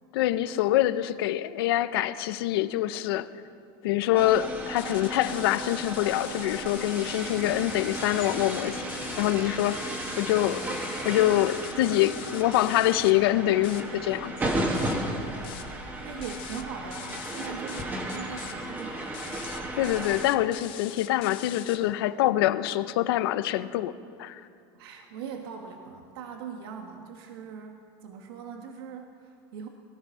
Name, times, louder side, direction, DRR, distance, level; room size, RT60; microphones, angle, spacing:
voice 1, 0.1-3.3 3.8-8.8 9.2-9.8 10.2-10.6 11.0-14.3 19.7-23.9 24.2-24.4, left 14 dB, 85° left, 14 dB, 0.7 m, -25 dB
sound 1, 4.2-20.2, right 1 dB, 15° right, 1.6 m, -34 dB
sound 2, 4.8-13.1 13.6-13.8 14.3-14.5 14.7-15.0 15.4-15.7 16.2-16.6 16.9-17.8 18.1-18.5 19.1-21.8, left 12 dB, 45° left, 1.1 m, -43 dB
voice 2, 16.0-19.0 24.7-29.7, right 6 dB, 85° right, 3 dB, 1.3 m, -41 dB
19.0 x 12.5 x 5.7 m, 2.5 s
supercardioid pair, 165°, 12 cm